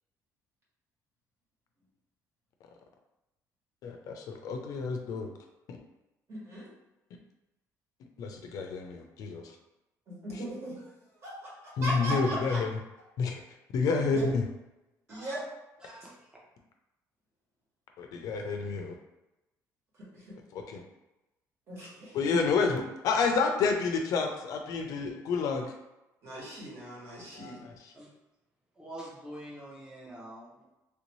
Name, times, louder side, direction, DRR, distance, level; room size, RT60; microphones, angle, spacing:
voice 1, 3.8-5.3 8.2-9.4 11.8-12.7 13.2-13.4 13.7-14.4 18.0-19.0 20.5-20.8 22.1-25.7 27.3-27.7, left 4 dB, 60° left, 3 dB, 0.4 m, -29 dB
voice 2, 6.3-6.7 10.1-10.8 11.2-12.6 14.1-14.3 15.1-15.4 20.1-20.4 21.7-22.2 26.2-27.6, right 1 dB, 40° right, -6 dB, 1.4 m, -38 dB
voice 3, 15.1-15.4 15.8-16.3 27.9-28.1 28.8-30.7, right 1 dB, 10° right, -4 dB, 0.7 m, -46 dB
3.3 x 2.7 x 3.0 m, 0.98 s
cardioid pair, 155°, 7 cm